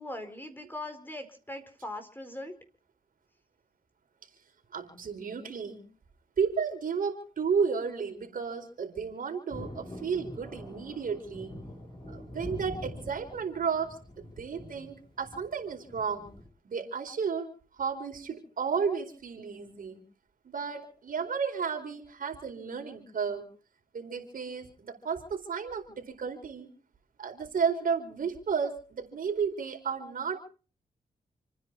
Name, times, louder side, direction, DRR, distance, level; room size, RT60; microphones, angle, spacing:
voice 1, 0.0-2.5, left 1 dB, 15° left, 7 dB, 4.3 m, -40 dB
voice 2, 4.7-5.8 6.4-11.5 12.1-16.3 16.6-17.5 17.8-20.0 20.4-23.5 23.9-26.7 27.2-30.4, right 6 dB, 65° right, 4 dB, 4.5 m, -33 dB
Thunder, 9.5-16.5, left 1 dB, 35° left, 7.5 m, -44 dB
29.5 x 10.0 x 4.7 m, 0.41 s
cardioid pair, 65°, 15 cm